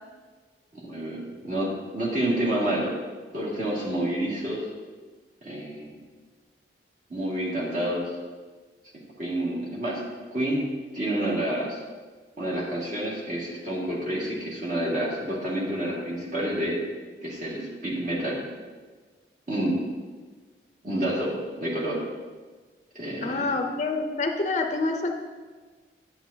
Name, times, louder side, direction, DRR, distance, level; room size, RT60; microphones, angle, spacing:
voice 1, 0.7-2.9 3.3-4.7 5.4-6.0 7.1-8.1 9.2-10.0 10.3-10.7 10.9-11.8 12.4-16.8 17.2-18.4 19.5-19.8 20.8-21.3 21.6-22.0 22.9-23.5, right 1 dB, 45° right, -5 dB, 2.0 m, -28 dB
voice 2, 23.2-25.1, left 3 dB, 40° left, 5 dB, 0.5 m, -27 dB
9.3 x 8.3 x 2.7 m, 1.4 s
head